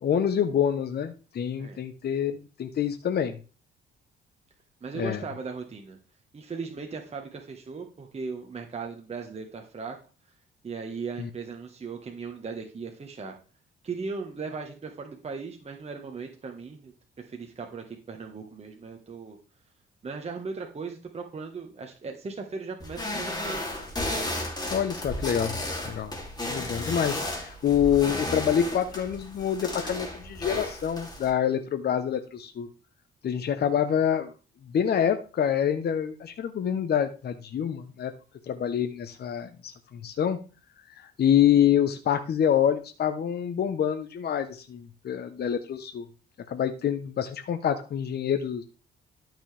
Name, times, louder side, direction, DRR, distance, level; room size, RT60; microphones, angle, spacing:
voice 1, 0.0-3.4 5.0-5.2 11.2-11.3 24.7-25.6 25.8-26.1 26.5-32.7 33.2-34.3 34.7-38.1 38.5-40.4 41.0-46.1 46.5-48.6, left 9 dB, 55° left, 8 dB, 1.0 m, -26 dB
voice 2, 4.8-6.0 6.3-10.0 10.6-13.3 13.8-19.4 20.0-23.6, right 4 dB, 30° right, 2 dB, 1.5 m, -38 dB
sound 1, 22.8-31.3, left 1 dB, 20° left, 3.0 m, -34 dB
12.5 x 6.0 x 3.5 m, 0.35 s
cardioid pair, 90°, 20 cm